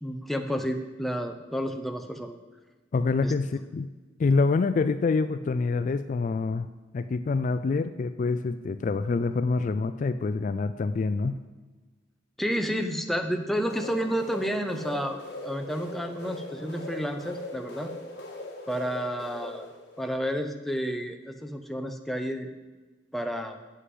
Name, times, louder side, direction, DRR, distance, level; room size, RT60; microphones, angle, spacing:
voice 1, 0.0-2.4 3.2-3.3 12.4-17.9 18.7-19.7 20.0-22.5 23.1-23.6, equal, ahead, 5 dB, 0.6 m, -31 dB
voice 2, 2.9-3.9 4.2-6.7 6.9-11.4, left 4 dB, 40° left, 11 dB, 0.3 m, -26 dB
sound 1, 13.5-20.2, left 1 dB, 60° left, 1.7 m, -40 dB
7.5 x 6.6 x 7.8 m, 1.2 s
head